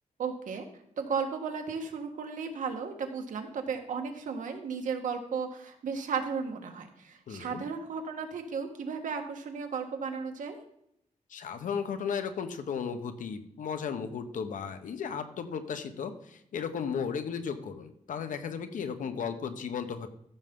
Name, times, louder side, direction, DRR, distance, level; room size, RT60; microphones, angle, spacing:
voice 1, 0.2-0.7 1.0-10.6, right 5 dB, 75° right, 5 dB, 1.5 m, -34 dB
voice 2, 7.3-7.6 11.3-20.1, left 6 dB, 85° left, 9 dB, 1.0 m, -35 dB
14.5 x 6.9 x 3.7 m, 0.77 s
wide cardioid pair, 145°, 13 cm